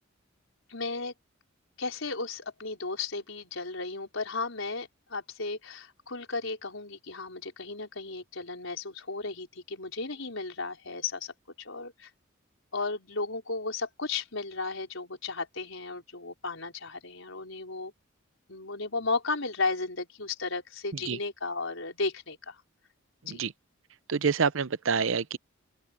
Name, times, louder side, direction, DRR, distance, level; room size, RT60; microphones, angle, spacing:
voice 1, 0.7-1.1 1.8-12.1 12.7-17.9 18.5-22.6 23.3-23.5, left 3 dB, 75° left, 4.9 m, -34 dB
voice 2, 24.1-25.4, right 5 dB, 70° right, 0.7 m, -27 dB
open air
head